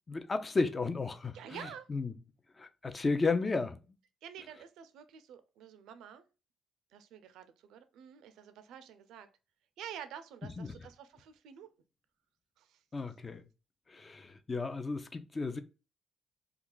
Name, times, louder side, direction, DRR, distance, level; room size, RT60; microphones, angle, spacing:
voice 1, 0.1-2.1 2.6-3.8 10.6-10.7 12.9-13.5 13.9-15.6, left 3 dB, 30° left, 0.4 m, -33 dB
voice 2, 1.3-1.9 4.2-6.2 6.9-9.3 9.8-11.7 12.6-12.8, right 9 dB, 85° right, 0.4 m, -49 dB
2.3 x 2.3 x 3.7 m
cardioid pair, 90°, 0 cm